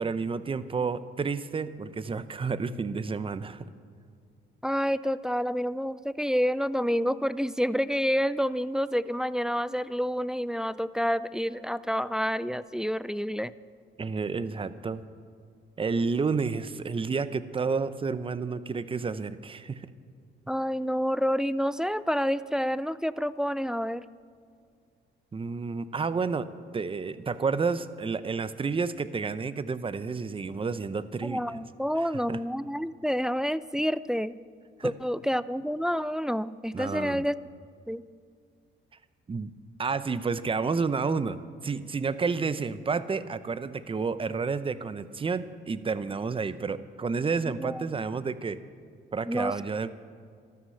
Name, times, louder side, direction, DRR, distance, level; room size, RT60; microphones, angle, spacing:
voice 1, 0.0-3.7 14.0-15.0 15.8-19.9 25.3-26.5 26.7-31.4 32.3-32.4 34.8-34.9 36.7-37.2 39.3-39.5 39.8-48.6 49.1-49.9, right 4 dB, 25° right, 14 dB, 0.7 m, -30 dB
voice 2, 4.6-13.5 20.5-24.1 31.2-34.3 34.8-37.4 37.9-38.0 47.4-47.8 49.3-49.6, equal, 5° right, 16 dB, 0.4 m, -28 dB
13.5 x 13.0 x 6.5 m, 2.2 s
cardioid pair, 90°, 20 cm